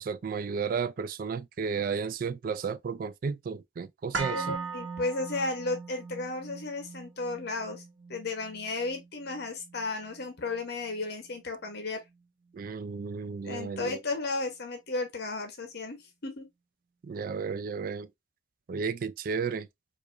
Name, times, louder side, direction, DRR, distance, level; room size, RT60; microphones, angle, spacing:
voice 1, 0.0-4.6 12.5-14.0 17.0-18.1 18.7-19.7, right 5 dB, 50° right, 0.3 m, -33 dB
sound 1, 4.1-12.2 12.5-12.6, right 4 dB, 80° right, 1.0 m, -41 dB
voice 2, 4.3-7.8 8.1-12.0 13.4-16.5, left 3 dB, 60° left, 0.8 m, -34 dB
4.7 x 2.5 x 2.4 m
head